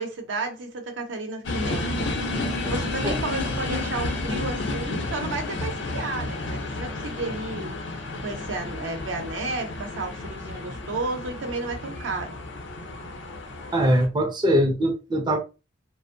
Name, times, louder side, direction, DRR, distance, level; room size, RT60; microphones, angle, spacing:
voice 1, 0.0-2.0 2.4-12.4, right 3 dB, 90° right, 0.7 m, -32 dB
sound 1, 1.4-14.1, left 2 dB, 75° left, 0.6 m, -31 dB
voice 2, 13.7-15.4, equal, 25° right, 0.4 m, -22 dB
2.5 x 2.0 x 2.5 m
head